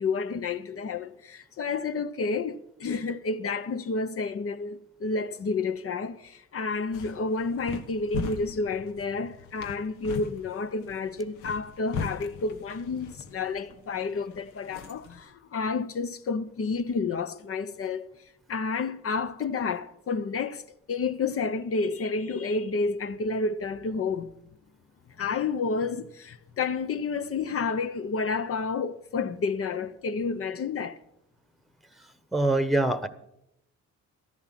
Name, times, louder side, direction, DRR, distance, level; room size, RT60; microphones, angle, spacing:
voice 1, 0.0-18.1 18.5-20.6 20.9-24.3 25.2-31.0, left 4 dB, 50° left, 0.9 m, -30 dB
sound 1, 6.7-15.2, left 4 dB, 80° left, 1.5 m, -40 dB
voice 2, 32.0-33.1, right 2 dB, ahead, 1.1 m, -25 dB
13.5 x 11.0 x 7.5 m
cardioid pair, 90°, 30 cm